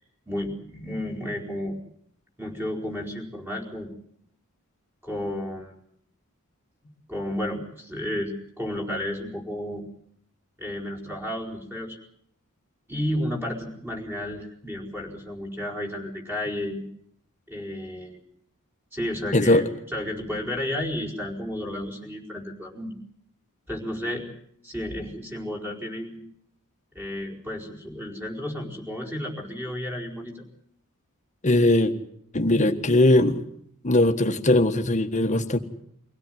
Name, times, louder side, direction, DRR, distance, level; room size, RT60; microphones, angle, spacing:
voice 1, 0.3-1.8 2.4-3.9 5.0-5.7 7.1-9.8 10.6-12.0 12.9-16.8 17.5-18.2 18.9-19.6 19.9-22.9 23.7-24.2 24.6-26.2 26.9-30.4, left 1 dB, 10° right, 0 dB, 4.7 m, -32 dB
voice 2, 19.3-19.6 31.4-31.9 32.3-33.4 33.8-35.6, left 1 dB, 35° left, 7 dB, 1.6 m, -20 dB
24.5 x 16.5 x 9.3 m, 0.68 s
head